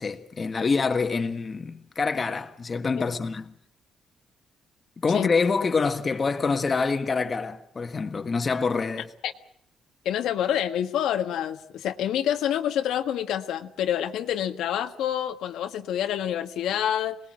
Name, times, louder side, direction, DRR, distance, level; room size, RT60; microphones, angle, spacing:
voice 1, 0.0-3.5 5.0-9.1, left 4 dB, 30° left, 1.6 m, -26 dB
voice 2, 10.0-17.2, left 10 dB, 90° left, 1.6 m, -27 dB
26.5 x 19.5 x 7.7 m
cardioid pair, 120°, 0 cm